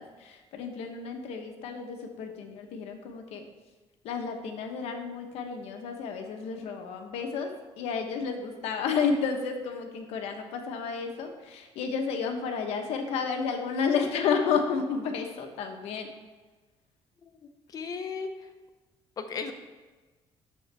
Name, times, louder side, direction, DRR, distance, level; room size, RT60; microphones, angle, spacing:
voice 1, 0.0-3.5 4.0-16.2, left 5 dB, 85° left, 4 dB, 1.0 m, -31 dB
voice 2, 17.7-18.3 19.2-19.5, left 5 dB, 35° left, 7 dB, 0.7 m, -35 dB
9.5 x 7.0 x 3.4 m, 1.3 s
cardioid pair, 165°, 10 cm